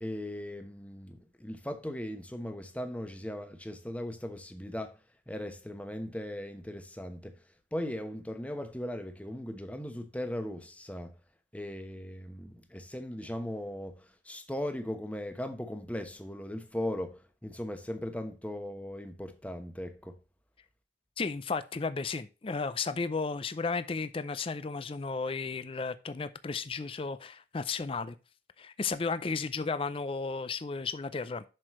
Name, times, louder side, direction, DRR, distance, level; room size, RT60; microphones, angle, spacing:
voice 1, 0.0-5.0 5.3-7.4 7.7-11.1 11.5-20.2, left 1 dB, 10° left, 1.0 m, -38 dB
voice 2, 21.2-28.1 28.6-31.4, left 4 dB, 30° left, 0.4 m, -34 dB
7.6 x 6.4 x 3.1 m
head